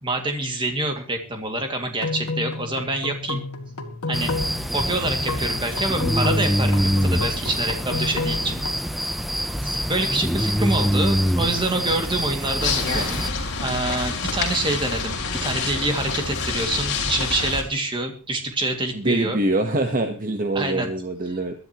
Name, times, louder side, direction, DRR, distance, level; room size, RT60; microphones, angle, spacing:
voice 1, 0.0-3.5 4.1-4.3 4.7-8.7 9.6-13.3 13.6-19.4 20.5-20.9, right 2 dB, 20° right, 4 dB, 2.2 m, -26 dB
sound 1, 1.9-8.7, left 3 dB, 90° left, 1.8 m, -31 dB
sound 2, 4.1-13.3, equal, ahead, 0.6 m, -24 dB
sound 3, 12.6-17.6, left 4 dB, 55° left, 3.6 m, -27 dB
voice 2, 18.9-21.5, right 2 dB, 40° right, 6 dB, 1.1 m, -24 dB
21.5 x 12.5 x 3.0 m, 0.35 s
head